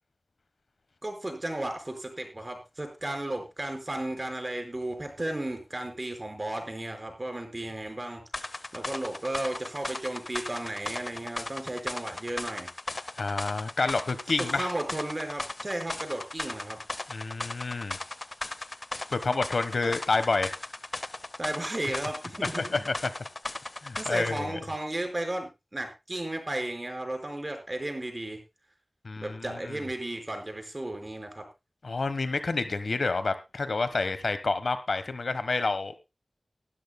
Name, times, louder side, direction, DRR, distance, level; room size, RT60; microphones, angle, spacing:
voice 1, 1.0-12.7 14.4-16.8 19.8-19.9 21.4-22.9 23.9-28.4 29.2-31.4, right 1 dB, 35° right, 4 dB, 4.9 m, -34 dB
sound 1, 8.3-24.5, left 2 dB, 45° left, 0.6 m, -37 dB
voice 2, 13.2-14.7 17.1-18.0 19.1-20.5 22.6-23.1 23.8-24.6 29.0-29.8 31.8-36.0, left 3 dB, 85° left, 11 dB, 1.1 m, -29 dB
19.5 x 12.5 x 2.2 m, 0.26 s
wide cardioid pair, 50°, 0 cm